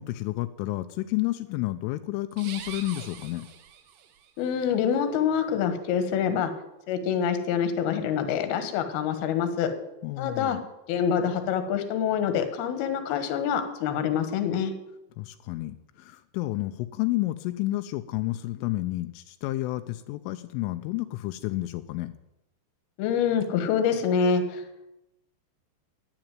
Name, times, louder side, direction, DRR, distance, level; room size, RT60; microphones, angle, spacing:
voice 1, 0.0-3.5 10.0-10.6 15.2-22.1, left 17 dB, 85° left, 9 dB, 3.2 m, -30 dB
sound 1, 2.3-4.3, right 8 dB, 70° right, 3.1 m, -43 dB
voice 2, 4.4-6.5 6.9-9.7 10.2-10.6 10.9-14.7 23.0-24.6, left 7 dB, 65° left, 8 dB, 3.0 m, -26 dB
12.0 x 10.5 x 9.2 m, 0.91 s
omnidirectional pair, 5.7 m